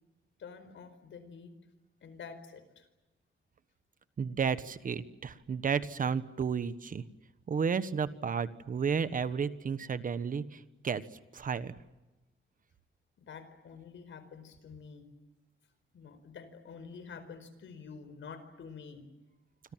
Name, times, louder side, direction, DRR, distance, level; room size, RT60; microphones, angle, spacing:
voice 1, 0.4-1.5 2.0-2.9 13.2-15.1 15.9-19.0, left 5 dB, 70° left, 11 dB, 4.8 m, -48 dB
voice 2, 4.2-7.0 7.5-11.0 11.3-11.7, right 6 dB, 45° right, 14 dB, 1.3 m, -32 dB
27.0 x 26.5 x 7.5 m, 1.1 s
wide cardioid pair, 170°, 20 cm